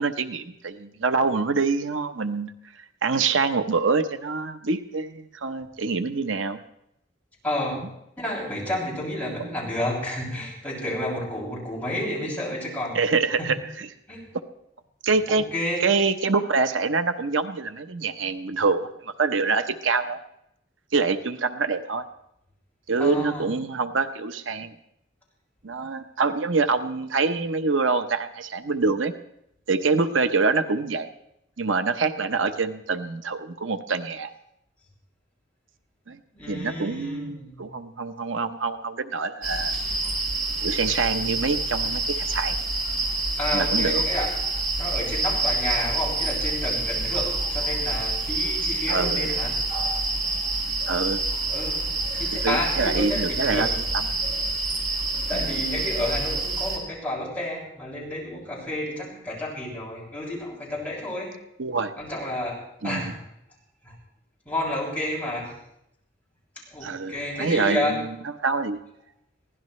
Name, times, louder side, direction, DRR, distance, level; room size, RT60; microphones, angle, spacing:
voice 1, 0.0-2.5 3.0-6.6 9.4-9.5 12.9-13.9 15.0-15.5 15.8-20.2 20.9-22.0 22.9-24.7 25.6-29.1 29.7-31.1 31.6-34.3 36.1-36.2 36.5-39.7 40.6-42.6 43.5-44.0 48.9-49.3 50.9-51.2 52.4-53.7 53.9-54.1 55.3-55.5 61.6-61.9 62.8-63.1 66.8-68.1 68.4-68.8, right 4 dB, 85° right, 9 dB, 0.9 m, -25 dB
voice 2, 7.4-7.8 8.2-13.0 13.4-13.5 14.1-14.2 15.3-15.8 23.0-23.4 36.3-37.6 43.4-44.3 44.8-50.6 51.5-51.8 52.1-53.7 55.3-61.3 62.0-63.2 63.8-63.9 64.5-65.5 66.7-68.0, left 1 dB, 10° left, -6 dB, 6.7 m, -30 dB
sound 1, 39.4-56.8, right 2 dB, 45° right, 4.9 m, -27 dB
23.0 x 16.5 x 3.2 m, 0.79 s
head